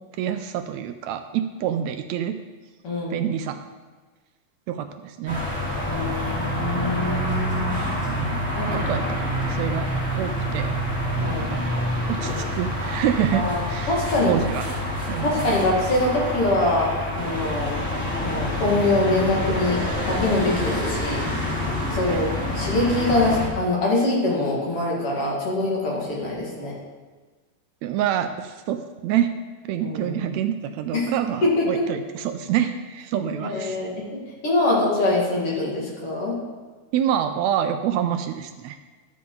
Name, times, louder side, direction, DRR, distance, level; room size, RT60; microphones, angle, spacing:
voice 1, 0.2-2.4 3.1-3.6 4.7-5.5 8.1-9.2 9.5-10.7 11.4-14.0 14.3-14.6 15.1-15.6 22.1-22.2 27.8-33.8 36.9-38.8, right 10 dB, 80° right, 8 dB, 1.7 m, -27 dB
voice 2, 2.8-3.2 5.9-7.8 8.5-8.8 11.2-11.5 13.3-13.6 13.9-14.3 15.2-17.8 18.2-19.8 20.0-21.2 21.9-26.7 29.8-30.3 30.9-31.1 31.4-31.9 33.2-36.4, left 2 dB, 55° left, -4 dB, 2.9 m, -24 dB
sound 1, 5.3-23.5, left 1 dB, 5° left, 2.4 m, -27 dB
12.0 x 7.7 x 3.9 m, 1.4 s
omnidirectional pair, 3.3 m